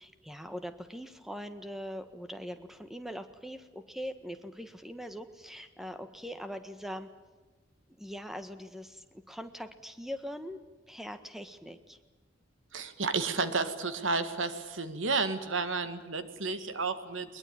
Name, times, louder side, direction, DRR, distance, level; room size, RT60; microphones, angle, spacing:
voice 1, 0.0-7.1 8.0-10.6 10.9-12.0, equal, ahead, 9 dB, 1.5 m, -42 dB
voice 2, 12.7-17.4, right 4 dB, 80° right, 10 dB, 2.0 m, -32 dB
22.0 x 21.5 x 8.9 m, 1.3 s
head